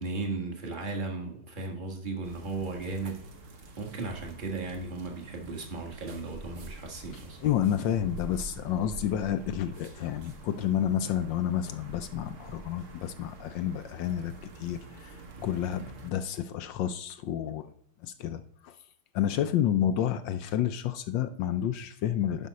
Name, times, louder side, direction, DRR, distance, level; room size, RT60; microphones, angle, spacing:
voice 1, 0.0-3.2 3.8-7.5 15.4-15.5, right 3 dB, 25° right, 1 dB, 1.5 m, -36 dB
sound 1, 2.2-16.1, right 3 dB, 50° right, 1.0 m, -47 dB
voice 2, 7.4-17.7 18.0-18.8 19.1-22.5, left 10 dB, 75° left, 11 dB, 1.1 m, -30 dB
11.0 x 5.4 x 4.1 m, 0.63 s
omnidirectional pair, 2.4 m